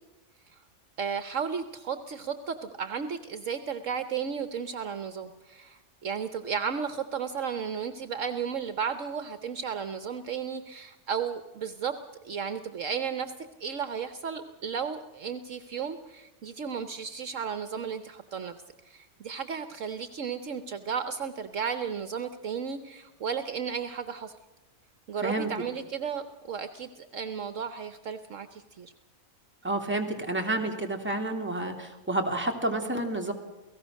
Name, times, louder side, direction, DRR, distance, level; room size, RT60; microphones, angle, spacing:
voice 1, 1.0-11.9 12.2-13.3 13.6-18.5 18.8-24.3 25.1-28.9, right 6 dB, 65° right, 11 dB, 1.2 m, -34 dB
voice 2, 29.6-33.3, right 2 dB, 10° right, 2 dB, 2.7 m, -29 dB
29.0 x 17.5 x 6.4 m, 1.0 s
omnidirectional pair, 1.5 m